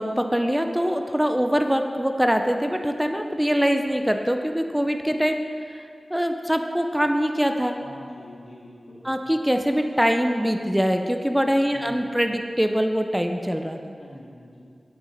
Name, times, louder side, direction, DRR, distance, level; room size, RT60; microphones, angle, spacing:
voice 1, 0.0-5.4 5.7-5.8 6.1-7.8 9.0-13.8, equal, 5° right, 5 dB, 0.5 m, -23 dB
voice 2, 7.7-9.3 11.7-12.0 14.0-14.7, left 1 dB, 85° left, -6 dB, 2.3 m, -45 dB
7.8 x 6.6 x 5.1 m, 2.3 s
wide cardioid pair, 70°, 0 cm